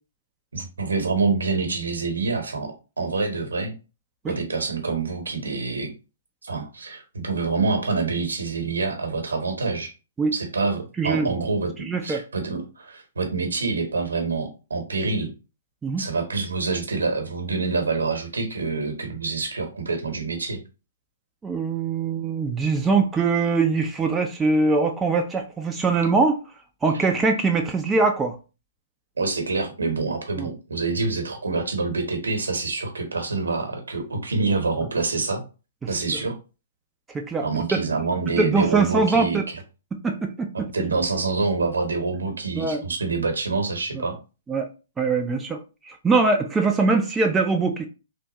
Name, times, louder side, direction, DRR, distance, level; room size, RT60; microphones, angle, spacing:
voice 1, 0.5-3.7 4.3-5.9 6.4-9.9 10.3-15.3 16.0-20.6 29.2-35.4 35.9-36.4 37.4-39.6 40.7-44.2, right 4 dB, 75° right, 1.0 m, -26 dB
voice 2, 11.0-11.3 11.8-12.2 15.8-16.0 21.4-26.4 26.8-28.4 30.4-30.5 37.1-37.8 38.4-39.4 40.0-40.7 42.6-42.8 43.9-44.0 44.5-44.7 45.0-47.9, right 4 dB, 10° right, 0.4 m, -22 dB
3.4 x 2.5 x 2.9 m
figure-of-eight pair, 120°, 0 cm